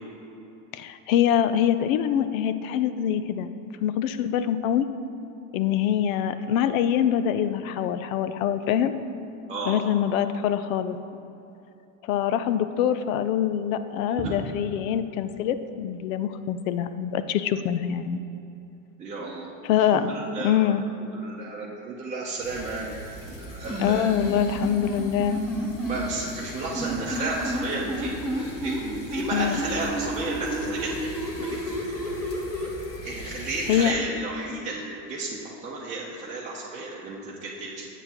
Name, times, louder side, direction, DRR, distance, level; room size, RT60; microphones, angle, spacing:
voice 1, 0.7-3.5 3.8-4.9 5.5-8.9 9.7-11.0 12.1-18.2 19.6-20.1 20.4-20.8 23.8-25.4 29.3-29.6 33.7-33.9, left 10 dB, 90° left, 11 dB, 0.6 m, -24 dB
voice 2, 9.5-9.8 14.2-14.3 19.0-19.5 19.9-20.7 21.0-23.0 23.2-24.1 25.8-31.1 31.4-31.9 33.0-37.9, right 3 dB, 20° right, -6 dB, 0.7 m, -33 dB
sound 1, 22.4-33.9, left 1 dB, 35° left, 1.1 m, -41 dB
sound 2, 23.7-26.0 26.7-28.8 29.1-32.7, right 1 dB, 5° left, 1.0 m, -30 dB
8.9 x 8.1 x 2.9 m, 2.9 s
supercardioid pair, 140°, 39 cm